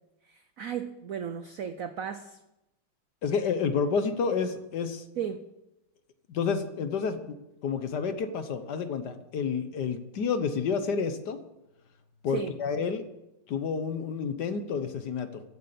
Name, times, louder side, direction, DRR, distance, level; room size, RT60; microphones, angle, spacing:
voice 1, 0.2-2.4 5.2-5.4 12.3-12.5, right 8 dB, 75° right, 10 dB, 0.7 m, -35 dB
voice 2, 3.2-5.0 6.3-7.4 7.6-11.4 12.2-13.1 13.5-15.4, left 5 dB, 60° left, 10 dB, 1.4 m, -29 dB
14.5 x 8.1 x 8.2 m, 0.93 s
omnidirectional pair, 2.3 m